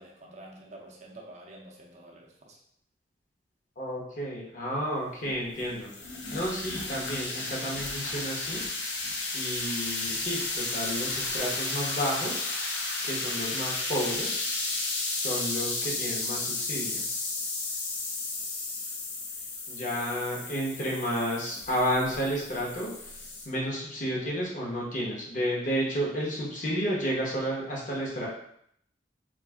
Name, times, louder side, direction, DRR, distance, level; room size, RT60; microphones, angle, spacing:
voice 1, 0.0-2.6, right 1 dB, 40° right, -1 dB, 0.5 m, -48 dB
voice 2, 3.8-8.7 9.3-12.5 13.0-14.4 15.1-17.0 19.7-28.3, equal, 45° left, -4 dB, 0.8 m, -31 dB
sound 1, 5.3-23.5, left 3 dB, 80° left, 0.6 m, -33 dB
2.5 x 2.4 x 3.4 m, 0.69 s
head